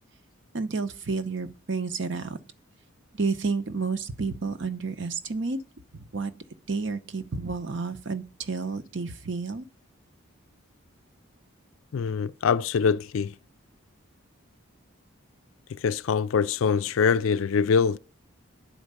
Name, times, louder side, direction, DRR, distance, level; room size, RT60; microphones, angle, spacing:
voice 1, 0.5-2.4 3.1-5.6 5.9-6.3 6.7-9.6, right 4 dB, 55° right, 0.8 m, -30 dB
voice 2, 11.9-13.3 15.8-18.0, left 6 dB, 70° left, 0.4 m, -24 dB
10.0 x 4.5 x 6.7 m
head